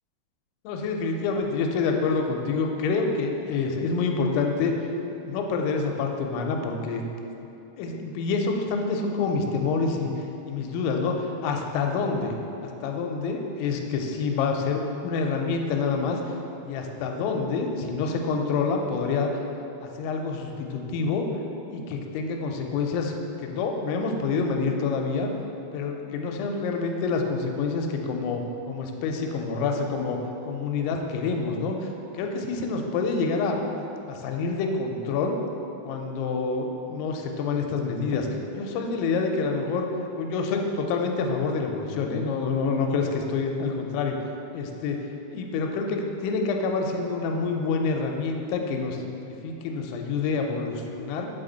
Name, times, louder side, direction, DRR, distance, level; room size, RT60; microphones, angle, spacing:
voice 1, 0.6-4.7 5.2-7.0 7.8-10.1 10.5-12.4 12.6-16.2 16.6-21.3 21.7-23.1 23.4-25.3 25.7-33.6 34.1-35.4 35.8-38.3 38.6-39.9 40.2-44.2 44.5-45.0 45.3-51.3, left 4 dB, 85° left, 2 dB, 2.9 m, -27 dB
7.5 x 4.1 x 3.9 m, 3.0 s
omnidirectional pair, 5.2 m